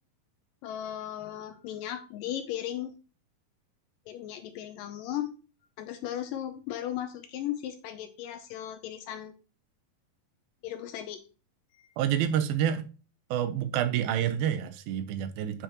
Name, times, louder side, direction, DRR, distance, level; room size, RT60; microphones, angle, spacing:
voice 1, 0.6-2.9 4.1-5.3 5.8-9.3 10.6-11.2 11.7-12.0, left 11 dB, 80° left, 2.1 m, -36 dB
voice 2, 12.0-12.9 13.3-15.6, right 10 dB, 85° right, 2.5 m, -28 dB
8.4 x 5.7 x 2.9 m
omnidirectional pair, 4.3 m